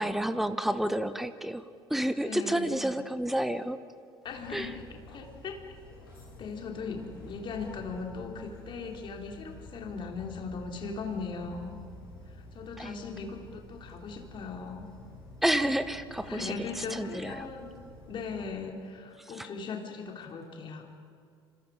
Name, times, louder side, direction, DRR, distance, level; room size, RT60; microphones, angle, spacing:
voice 1, 0.0-1.6 1.9-3.8 4.5-4.7 12.8-12.9 15.4-16.5 16.9-17.5, right 1 dB, ahead, 12 dB, 1.1 m, -29 dB
voice 2, 2.2-2.8 4.2-5.6 6.0-6.1 6.4-11.7 12.3-14.8 16.2-17.7 18.1-20.9, left 4 dB, 40° left, 2 dB, 3.5 m, -39 dB
sound 1, 4.2-18.5, left 1 dB, 75° left, 7.7 m, -49 dB
29.0 x 26.5 x 5.1 m, 2.2 s
figure-of-eight pair, 60°, 12 cm